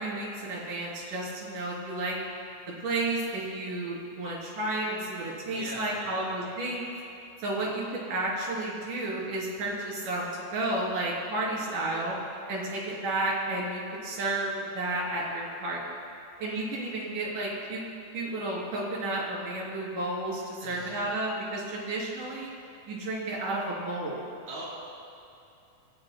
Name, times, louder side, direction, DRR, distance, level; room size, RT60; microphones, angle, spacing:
voice 1, 0.0-2.2 2.8-6.9 7.4-12.1 12.5-15.8 16.4-17.8 18.1-22.5 22.9-24.2, right 2 dB, 80° right, -4 dB, 4.8 m, -32 dB
voice 2, 5.5-6.3 11.5-12.1 20.6-21.0 24.5-24.7, right 2 dB, 65° right, -6 dB, 4.2 m, -41 dB
28.0 x 17.5 x 2.2 m, 2.7 s
omnidirectional pair, 3.6 m